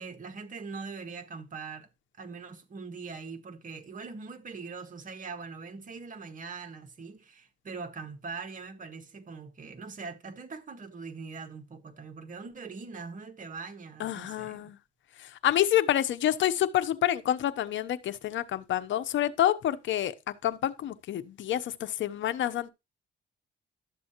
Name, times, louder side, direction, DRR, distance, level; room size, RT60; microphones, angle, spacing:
voice 1, 0.0-1.9 2.2-14.7, right 4 dB, 40° right, 1.7 m, -42 dB
voice 2, 14.0-14.8 15.2-22.7, left 12 dB, 70° left, 0.9 m, -28 dB
12.0 x 7.6 x 3.0 m
cardioid pair, 90°, 20 cm